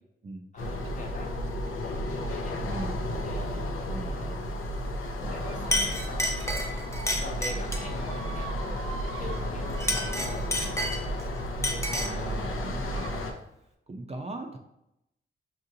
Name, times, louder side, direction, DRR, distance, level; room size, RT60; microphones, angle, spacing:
voice 1, 0.5-1.4 1.7-2.6 3.0-4.4 5.3-8.6 9.2-10.4 11.4-12.4, left 2 dB, 35° left, 0 dB, 1.0 m, -44 dB
sound 1, 0.6-13.3, equal, 75° left, 0.6 m, -33 dB
sound 2, 0.8-1.1 1.5-1.8 2.1-2.3 2.7-4.6 5.1-5.7 6.3-7.3 7.5-11.1 12.1-12.2 12.9-13.3, right 5 dB, 75° right, 0.6 m, -47 dB
voice 2, 2.6-2.9 3.9-4.1 12.0-13.2 13.9-14.6, right 2 dB, 30° right, 2 dB, 0.5 m, -39 dB
Chink clink, 5.2-5.4 5.7-7.9 9.7-11.2 11.6-12.2, left 1 dB, 15° left, 0.6 m, -30 dB
5.8 x 2.6 x 2.7 m, 0.84 s
cardioid pair, 80°, 21 cm